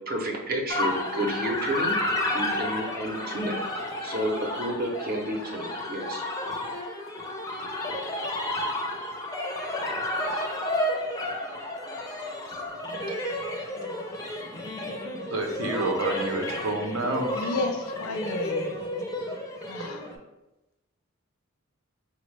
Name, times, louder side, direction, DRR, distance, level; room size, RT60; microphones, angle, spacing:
voice 1, 0.1-3.6 4.0-6.3, right 1 dB, 45° right, 0.6 m, -31 dB
sound 1, 0.7-20.1, left 1 dB, 15° left, 0.4 m, -31 dB
voice 2, 15.3-17.5 19.8-20.0, right 2 dB, 85° right, 0.6 m, -29 dB
voice 3, 17.3-18.7 19.7-20.0, left 2 dB, 85° left, 0.4 m, -32 dB
4.4 x 2.0 x 3.1 m
head